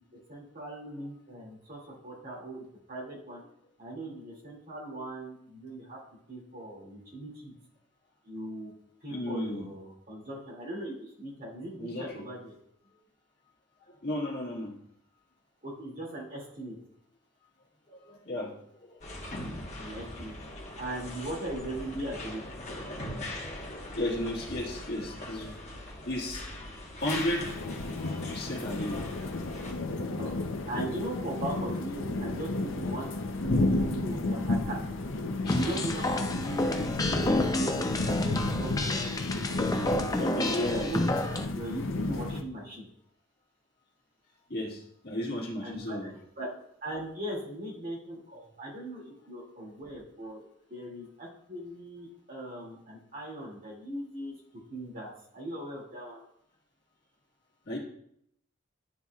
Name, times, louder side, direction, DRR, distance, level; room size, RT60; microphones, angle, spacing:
voice 1, 0.3-3.4 3.8-6.0 6.3-7.5 8.2-8.7 9.0-12.5 15.6-16.7 19.8-20.3 20.8-22.5 30.2-30.3 30.7-33.1 33.4-34.8 35.5-36.7 37.0-40.3 40.6-41.0 41.5-42.8 45.6-46.5 46.8-50.4 50.7-54.3 54.7-56.2, right 1 dB, 40° right, -3 dB, 2.3 m, -39 dB
voice 2, 9.1-9.7 11.8-12.3 13.9-14.7 17.9-19.2 23.9-25.6 25.8-26.5 27.0-27.5 28.3-29.0 35.4-35.7 36.6-36.9 40.1-41.2 44.5-46.1 57.6-57.8, left 1 dB, 50° left, -3 dB, 1.6 m, -34 dB
sound 1, 19.0-29.7, left 1 dB, 35° left, 1.2 m, -41 dB
sound 2, 27.0-42.4, left 2 dB, 65° left, 0.6 m, -32 dB
sound 3, 35.5-41.5, left 1 dB, 15° left, 0.5 m, -30 dB
11.0 x 4.2 x 2.3 m, 0.70 s
head